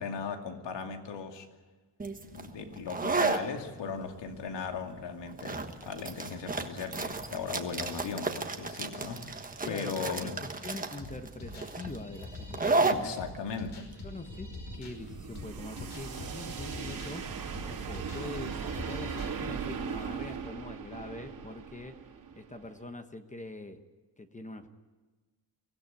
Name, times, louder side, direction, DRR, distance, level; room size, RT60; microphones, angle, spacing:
voice 1, 0.0-1.5 2.3-10.3 12.9-14.0, left 5 dB, 85° left, 4 dB, 2.6 m, -38 dB
sound 1, 2.0-15.4, right 3 dB, 20° right, 1.3 m, -33 dB
voice 2, 9.6-13.2 14.0-14.5 14.7-17.3 17.7-22.0 22.3-23.8 24.2-24.7, left 2 dB, 15° left, 7 dB, 1.1 m, -43 dB
sound 2, 11.0-19.6, left 3 dB, 65° left, 5.3 m, -45 dB
sound 3, 13.9-22.8, right 6 dB, 55° right, 2.8 m, -39 dB
23.5 x 16.5 x 9.3 m, 1.3 s
wide cardioid pair, 165°, 42 cm